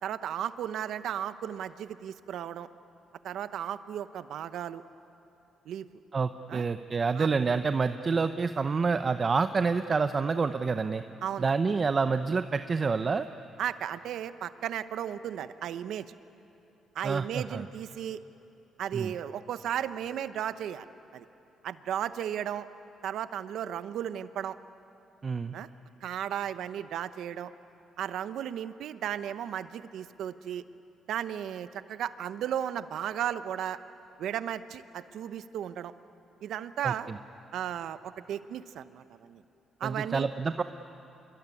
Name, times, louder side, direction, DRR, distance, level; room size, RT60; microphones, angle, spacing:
voice 1, 0.0-2.7 3.2-4.8 5.6-5.9 6.5-6.6 7.1-7.3 11.2-11.5 13.6-16.2 16.9-18.2 18.8-20.9 21.1-21.2 21.6-22.7 23.0-24.6 25.5-25.7 26.0-27.5 28.0-30.6 31.1-33.8 34.2-35.9 36.4-37.1 37.5-39.4 39.8-40.3, right 10 dB, 75° right, 12 dB, 0.9 m, -35 dB
voice 2, 6.1-11.0 11.4-13.3 17.0-17.6 18.9-19.1 25.2-25.5 36.8-37.2 39.8-40.6, right 4 dB, 35° right, 9 dB, 0.7 m, -28 dB
26.0 x 23.0 x 9.8 m, 2.8 s
cardioid pair, 90°, 0 cm